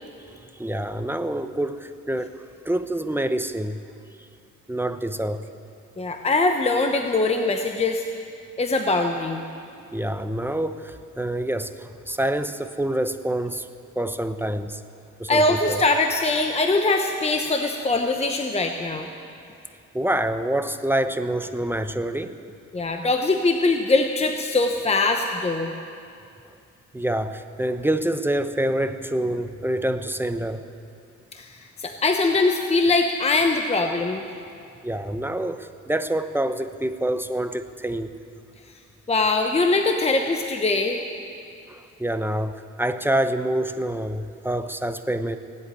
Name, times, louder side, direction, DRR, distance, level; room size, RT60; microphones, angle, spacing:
voice 1, 0.3-3.8 4.7-5.4 9.9-13.7 14.0-14.8 15.2-15.8 19.9-22.4 26.9-30.7 34.8-38.1 41.7-45.4, right 1 dB, 5° right, 10 dB, 0.7 m, -26 dB
voice 2, 6.0-8.0 8.6-9.4 15.3-19.1 22.7-25.7 31.3-34.3 39.1-41.0, left 3 dB, 20° left, 5 dB, 0.9 m, -22 dB
17.5 x 8.1 x 9.8 m, 2.4 s
cardioid pair, 90°, 30 cm